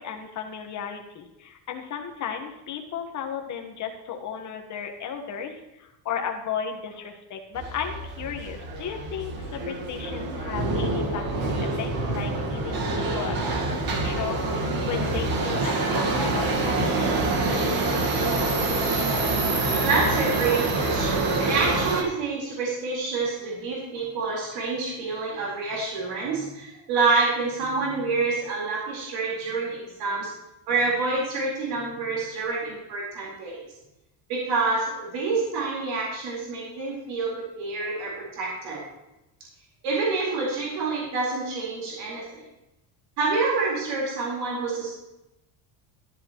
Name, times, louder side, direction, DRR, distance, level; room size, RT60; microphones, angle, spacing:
voice 1, 0.0-17.2, left 7 dB, 40° left, 4 dB, 1.4 m, -35 dB
Subway metro underground, 7.5-22.0, right 2 dB, 50° right, 1.7 m, -26 dB
voice 2, 19.7-30.3 30.7-33.6 34.3-38.8 39.8-42.4 43.2-44.9, right 4 dB, 85° right, -5 dB, 4.4 m, -27 dB
13.5 x 11.0 x 3.1 m, 0.94 s
cardioid pair, 170°, 46 cm